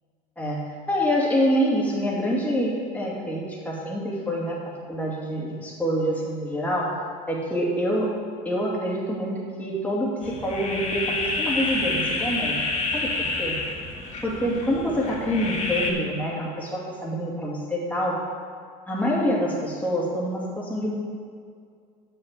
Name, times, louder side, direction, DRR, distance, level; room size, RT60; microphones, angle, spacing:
voice 1, 0.9-6.9 7.3-8.1 8.4-12.7 12.9-13.1 13.4-13.6 14.2-18.2 18.9-21.0, equal, 10° left, -4 dB, 2.6 m, -26 dB
sound 1, 10.2-15.9, left 3 dB, 35° left, 1.9 m, -28 dB
7.0 x 6.8 x 7.4 m, 2.1 s
supercardioid pair, 110°, 20 cm